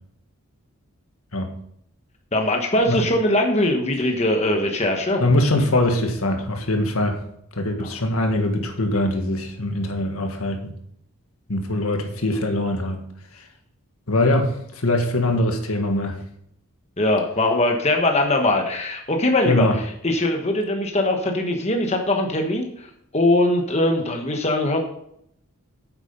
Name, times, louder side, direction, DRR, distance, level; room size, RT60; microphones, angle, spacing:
voice 1, 2.3-5.2 7.8-7.9 17.0-22.9 23.1-24.8, left 1 dB, 30° left, 3 dB, 1.2 m, -21 dB
voice 2, 5.2-7.2 7.5-10.7 11.5-13.0 13.3-13.5 14.1-16.1 19.4-19.7, left 1 dB, 75° left, 4 dB, 1.8 m, -22 dB
9.2 x 8.2 x 5.3 m, 0.73 s
head